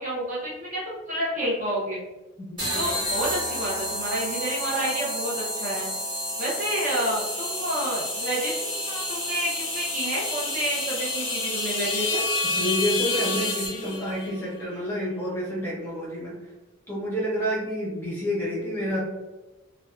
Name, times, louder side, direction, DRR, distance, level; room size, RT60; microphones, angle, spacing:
voice 1, 0.0-2.0 2.7-5.9 6.4-12.2, right 1 dB, 40° right, -5 dB, 0.6 m, -29 dB
voice 2, 2.5-2.9 12.5-16.4 16.9-19.0, equal, 10° left, -6 dB, 0.7 m, -29 dB
sound 1, 2.6-14.0, equal, 25° right, 1.0 m, -31 dB
sound 2, 6.5-14.5, left 4 dB, 65° left, 0.4 m, -32 dB
2.4 x 2.2 x 2.3 m, 1.1 s
head